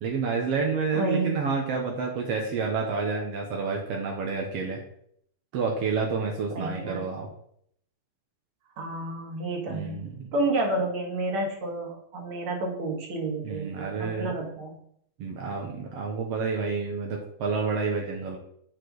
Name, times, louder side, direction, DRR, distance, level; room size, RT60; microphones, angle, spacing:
voice 1, 0.0-4.8 5.5-7.3 9.7-10.3 13.4-14.3 15.2-18.4, right 5 dB, 70° right, 0 dB, 1.4 m, -29 dB
voice 2, 0.9-1.4 6.5-7.0 8.8-10.0 10.3-14.8, right 2 dB, 45° right, 0 dB, 2.1 m, -30 dB
11.5 x 4.9 x 3.9 m, 0.68 s
omnidirectional pair, 4.3 m